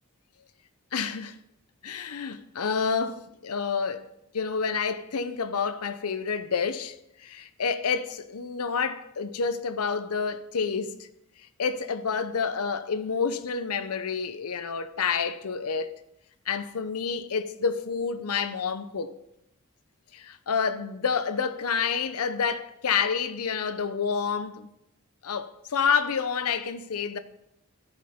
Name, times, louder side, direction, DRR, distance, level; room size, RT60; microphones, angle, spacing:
voice 1, 0.9-1.4 1.8-4.1 4.3-6.9 7.2-11.0 11.6-16.0 16.5-19.1 20.1-24.7 25.2-27.2, left 6 dB, 85° left, 0.7 m, -29 dB
13.0 x 5.4 x 4.3 m
head